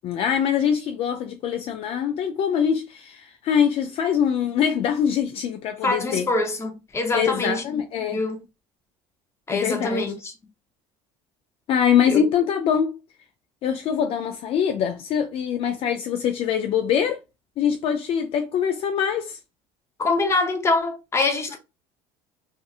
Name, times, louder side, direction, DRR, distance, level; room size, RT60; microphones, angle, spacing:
voice 1, 0.0-6.3 7.1-8.2 9.5-10.0 11.7-13.0 13.6-17.2 17.6-19.4, left 8 dB, 50° left, 0.4 m, -23 dB
voice 2, 5.8-7.6 8.1-8.4 9.5-10.3 12.1-12.2 20.0-21.6, left 2 dB, 20° left, 0.7 m, -24 dB
2.6 x 2.4 x 2.4 m
cardioid pair, 120°, 12 cm